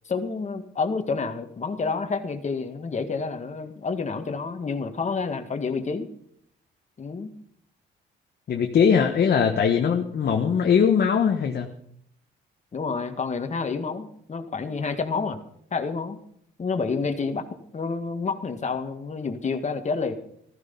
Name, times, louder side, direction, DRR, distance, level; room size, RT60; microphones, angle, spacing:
voice 1, 0.1-6.1 7.0-7.3 12.7-15.4 15.7-16.2 16.6-17.5 17.7-20.2, left 4 dB, 35° left, 6 dB, 1.8 m, -29 dB
voice 2, 8.5-11.7, left 7 dB, 55° left, 3 dB, 1.4 m, -21 dB
14.5 x 13.5 x 5.4 m, 0.67 s
cardioid pair, 90°, 20 cm